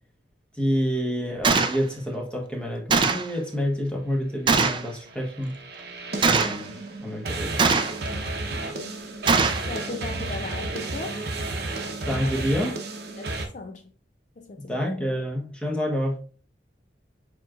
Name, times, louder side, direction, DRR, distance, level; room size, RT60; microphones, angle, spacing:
voice 1, 0.5-5.5 6.3-6.7 7.0-7.6 12.0-12.7 14.6-16.2, equal, 5° left, 1.1 m, -28 dB
Gunshot gunfire, 1.4-1.8 2.9-3.3 4.5-4.9 6.2-6.6 7.6-8.1 9.3-9.7, right 4 dB, 25° right, 0.4 m, -21 dB
sound 1, 5.1-13.5, right 2 dB, 60° right, 0.8 m, -32 dB
voice 2, 6.1-6.4 8.1-9.0 9.7-11.2 12.2-12.3 13.2-13.9 14.4-15.1, left 3 dB, 45° left, 0.4 m, -39 dB
7.0 x 3.0 x 2.3 m
head